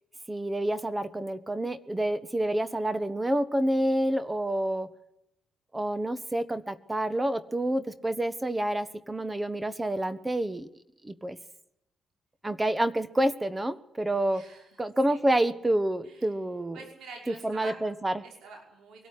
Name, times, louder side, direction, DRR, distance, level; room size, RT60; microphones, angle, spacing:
voice 1, 0.3-4.9 5.7-10.7 11.0-11.4 12.4-14.4 14.8-16.8 17.4-18.2, right 1 dB, 15° right, 14 dB, 1.3 m, -28 dB
voice 2, 14.0-14.7 15.1-15.2 16.0-16.3 16.7-17.8 18.2-19.1, right 3 dB, 85° right, 2 dB, 5.2 m, -47 dB
23.0 x 13.0 x 9.8 m, 0.80 s
cardioid pair, 80°, 0 cm